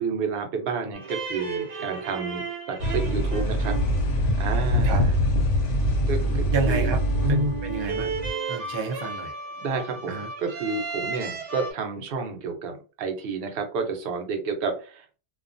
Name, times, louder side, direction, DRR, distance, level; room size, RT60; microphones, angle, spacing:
voice 1, 0.0-3.8 4.4-5.2 6.1-7.0 7.2-7.6 9.6-15.2, right 4 dB, 60° right, 4 dB, 0.8 m, -30 dB
sound 1, 0.9-11.7, right 4 dB, 80° right, 1.1 m, -35 dB
sound 2, 2.8-8.3, equal, 85° left, 0.9 m, -24 dB
voice 2, 6.2-7.0 7.3-8.1 8.5-9.3 10.1-10.3, right 3 dB, 40° right, 2 dB, 0.4 m, -30 dB
2.3 x 2.2 x 2.5 m, 0.35 s
omnidirectional pair, 1.2 m